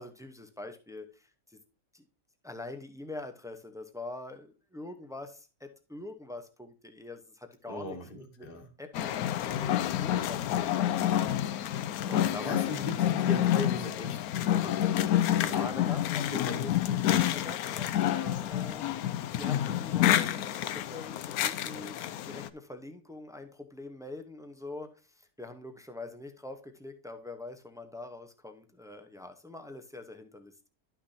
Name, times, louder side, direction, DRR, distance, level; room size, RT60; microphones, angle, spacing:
voice 1, 0.0-1.6 1.9-2.0 2.4-8.5 8.8-10.9 12.1-12.7 15.4-16.3 17.3-30.7, left 2 dB, 5° right, 6 dB, 0.4 m, -44 dB
voice 2, 7.7-8.7 12.1-14.2 14.5-14.8 15.4-15.7 16.2-17.0, left 2 dB, 35° left, 2 dB, 1.4 m, -39 dB
sound 1, 8.9-22.5, left 11 dB, 75° left, 1.0 m, -28 dB
11.5 x 5.9 x 2.7 m, 0.34 s
omnidirectional pair, 1.6 m